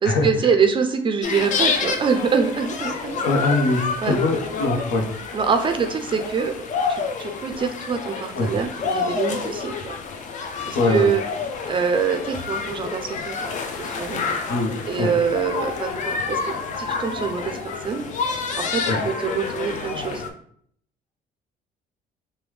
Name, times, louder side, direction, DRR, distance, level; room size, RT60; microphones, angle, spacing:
voice 1, 0.0-3.2 4.0-4.2 5.3-6.5 6.9-9.9 10.7-11.2 11.7-13.4 13.8-14.2 14.9-18.0 18.6-20.2, right 6 dB, 30° right, 7 dB, 0.4 m, -24 dB
sound 1, 1.2-20.3, left 5 dB, 45° left, 0.4 m, -28 dB
voice 2, 3.2-5.1 8.3-8.5 10.7-11.1 14.5-14.7 15.0-15.1 18.9-19.0, left 2 dB, 75° left, 1 dB, 0.8 m, -22 dB
3.3 x 2.2 x 3.1 m, 0.63 s
cardioid pair, 110°, 17 cm